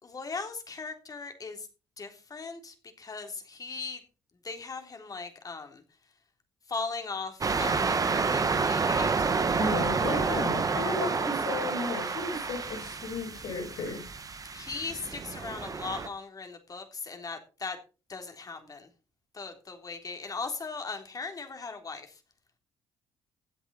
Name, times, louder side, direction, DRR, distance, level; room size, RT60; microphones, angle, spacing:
voice 1, 0.0-1.7 2.0-4.0 4.4-5.8 6.7-9.3 14.5-17.8 18.1-18.9 19.3-22.2, left 4 dB, 40° left, 6 dB, 3.4 m, -38 dB
sound 1, 7.4-16.1, right 4 dB, 35° right, 1.6 m, -29 dB
voice 2, 9.5-14.0, left 3 dB, 70° left, 0 dB, 6.2 m, -34 dB
16.0 x 8.1 x 4.2 m, 0.33 s
hypercardioid pair, 55°, 10 cm